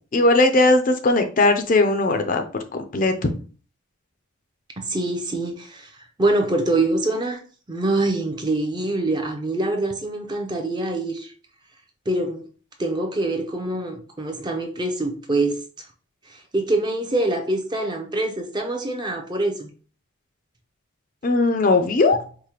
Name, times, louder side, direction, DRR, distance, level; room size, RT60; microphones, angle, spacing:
voice 1, 0.1-2.4 2.9-3.1 21.2-22.2, left 2 dB, 40° left, 0.4 m, -18 dB
voice 2, 4.8-7.4 7.7-11.3 12.1-12.5 12.8-15.9 16.3-19.7, right 2 dB, 20° right, 0.5 m, -25 dB
4.8 x 2.1 x 2.9 m
head